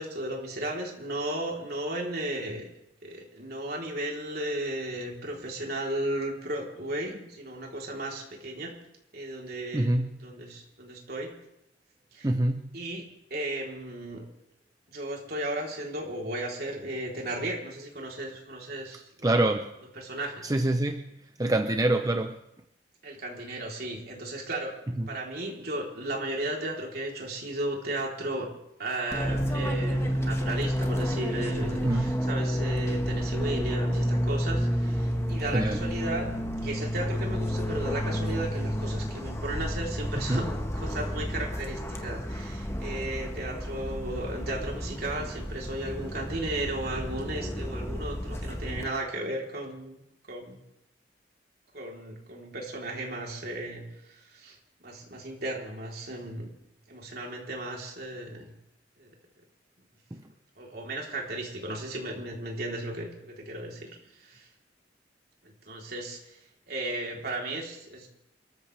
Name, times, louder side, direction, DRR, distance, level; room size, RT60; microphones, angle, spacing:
voice 1, 0.0-2.6 3.0-8.7 9.1-9.9 10.2-11.3 12.1-12.3 12.7-13.0 13.3-14.2 14.9-19.5 20.0-20.5 23.0-24.7 25.1-28.5 28.8-36.3 36.6-50.0 50.3-50.6 51.7-54.6 54.8-56.5 56.9-58.5 59.0-59.1 60.6-63.9 64.2-64.5 65.4-66.4 66.7-68.1, right 1 dB, 60° right, -1 dB, 3.7 m, -35 dB
voice 2, 9.7-10.1 12.2-12.6 19.2-19.7 20.4-21.0 21.4-22.4 25.0-25.1 31.8-32.1 35.5-35.8 40.2-40.4 60.1-60.2, right 1 dB, 20° right, 7 dB, 0.7 m, -25 dB
Fixed-wing aircraft airplane, 29.1-48.8, equal, 15° left, 1.5 m, -30 dB
28.0 x 14.5 x 3.4 m, 0.83 s
head